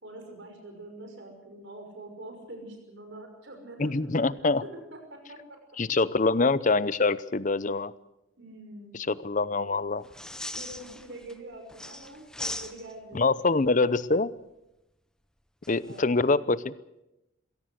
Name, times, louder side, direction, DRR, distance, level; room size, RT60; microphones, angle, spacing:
voice 1, 0.0-5.6 6.2-6.3 8.4-9.1 10.5-13.8 15.8-16.3, right 1 dB, 55° right, 4 dB, 5.7 m, -45 dB
voice 2, 3.8-4.6 5.8-7.9 9.1-10.1 13.1-14.3 15.7-16.7, left 3 dB, 40° left, 18 dB, 0.7 m, -25 dB
sound 1, 10.0-11.3 11.7-13.1 15.6-16.0, left 1 dB, 5° left, 0.7 m, -39 dB
22.0 x 16.5 x 8.1 m, 0.91 s
head